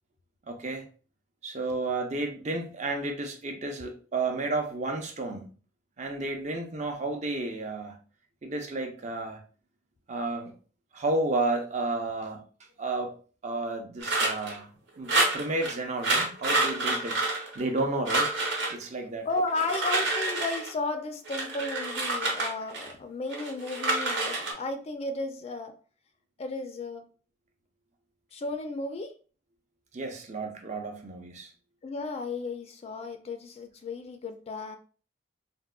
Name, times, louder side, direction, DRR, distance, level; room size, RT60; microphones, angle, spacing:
voice 1, 0.5-0.9 1.4-5.5 6.0-8.0 8.4-9.4 10.1-10.5 10.9-12.4 12.8-13.2 13.4-14.7 15.0-17.2 17.5-18.3 18.7-19.3 29.9-31.5, right 2 dB, 40° right, 3 dB, 0.5 m, -32 dB
sound 1, 14.0-14.6 15.1-15.7 16.0-17.8 18.1-18.7 19.5-20.7 21.3-22.9 23.3-24.5, right 2 dB, 75° right, 0.9 m, -28 dB
voice 2, 19.3-25.7 26.4-27.0 28.3-29.1 31.8-34.8, left 3 dB, 35° left, 7 dB, 0.3 m, -34 dB
3.5 x 2.1 x 2.3 m, 0.38 s
head